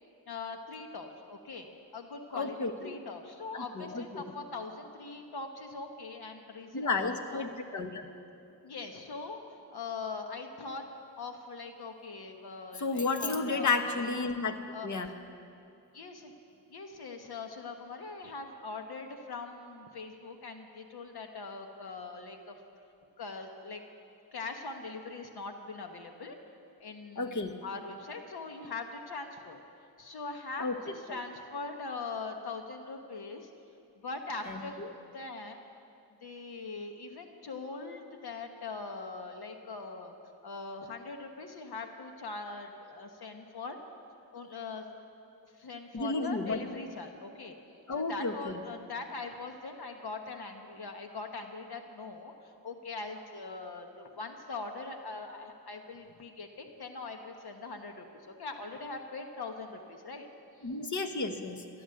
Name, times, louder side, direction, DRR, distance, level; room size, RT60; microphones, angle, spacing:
voice 1, 0.3-7.5 8.6-9.4 9.7-10.8 11.2-14.3 14.7-15.1 15.9-16.3 16.7-22.6 23.2-23.8 24.3-26.4 26.8-29.6 30.0-33.5 34.0-35.6 36.2-40.1 40.4-43.8 44.3-44.8 45.6-47.6 47.9-60.3 60.6-60.7, left 3 dB, 60° left, 5 dB, 1.3 m, -42 dB
voice 2, 2.3-3.0 3.8-4.3 6.7-8.0 12.8-14.5 14.8-15.1 27.2-27.5 30.6-30.8 31.1-31.2 34.5-34.9 45.9-46.6 47.9-48.6 60.6-61.6, left 3 dB, 45° left, 7 dB, 1.3 m, -32 dB
15.0 x 11.0 x 7.8 m, 2.6 s
cardioid pair, 90°, 43 cm